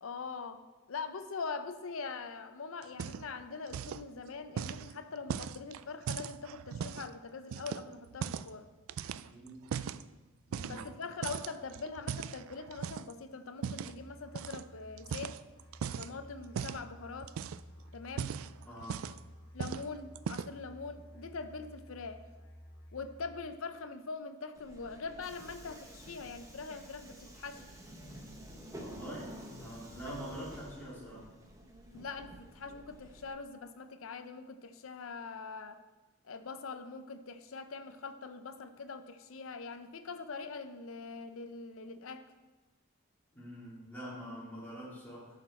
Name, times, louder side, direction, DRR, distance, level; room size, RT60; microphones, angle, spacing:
voice 1, 0.0-0.6 0.9-8.7 10.7-15.4 16.0-17.4 17.9-18.4 19.5-22.3 22.9-27.6 31.9-35.8 36.2-42.3, left 4 dB, 80° left, 10 dB, 0.6 m, -43 dB
sound 1, 2.8-3.4 3.7-4.1 4.6-7.1 7.5-8.5 8.9-10.0 10.5-11.0 11.2-13.1 13.6-13.9 14.4-14.6 15.0-16.1 16.6-16.9 17.2-17.7 18.1-19.3 19.6-19.9 20.2-20.6, right 7 dB, 80° right, 0.3 m, -39 dB
voice 2, 9.2-9.7 10.5-10.9 18.7-19.1 28.8-31.3 43.3-45.3, equal, 10° left, -7 dB, 2.7 m, -45 dB
Musical instrument, 13.7-23.7, equal, 45° left, 1.3 m, -54 dB
Subway metro underground, 24.5-33.3, equal, 15° right, 1.0 m, -50 dB
11.5 x 6.6 x 4.3 m, 1.2 s
head